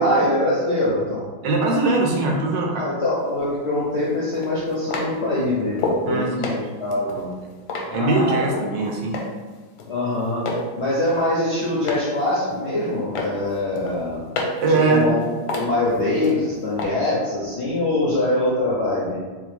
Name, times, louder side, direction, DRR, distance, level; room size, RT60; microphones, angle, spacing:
voice 1, 0.0-1.3 2.7-7.4 7.9-8.8 9.9-10.5 10.8-14.2 14.9-15.2 15.5-19.2, left 1 dB, 60° left, -7 dB, 0.7 m, -23 dB
voice 2, 1.4-2.9 6.1-6.5 7.9-9.2 14.6-15.1, right 3 dB, 70° right, -1 dB, 1.2 m, -21 dB
sound 1, 3.3-3.4 4.3-6.1 6.4-8.7 9.1-9.5 9.8-10.7 11.0-12.1 12.5-12.9 13.2-14.7 15.0-16.4 16.8-16.9, left 2 dB, 90° left, 1.4 m, -29 dB
3.6 x 3.0 x 3.3 m, 1.4 s
omnidirectional pair, 2.1 m